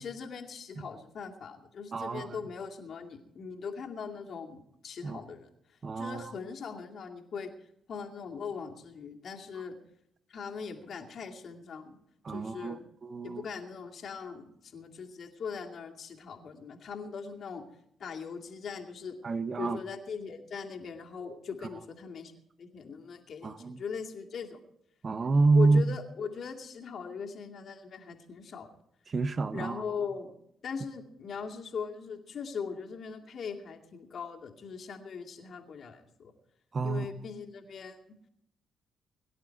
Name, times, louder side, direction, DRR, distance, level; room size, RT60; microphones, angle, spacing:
voice 1, 0.0-7.5 7.9-9.8 10.3-12.0 12.3-12.9 13.2-17.6 18.0-19.2 19.6-22.3 22.6-24.6 25.5-28.7 29.5-30.4 30.6-36.3 36.8-38.0, left 6 dB, 55° left, 2.4 m, -40 dB
voice 2, 1.9-2.3 5.0-5.2 5.8-6.1 12.3-12.8 13.1-13.4 19.2-19.8 23.4-23.8 25.0-25.8 29.1-29.8 36.7-37.1, right 3 dB, 40° right, 1.2 m, -27 dB
23.0 x 11.0 x 4.6 m
hypercardioid pair, 45°, 0 cm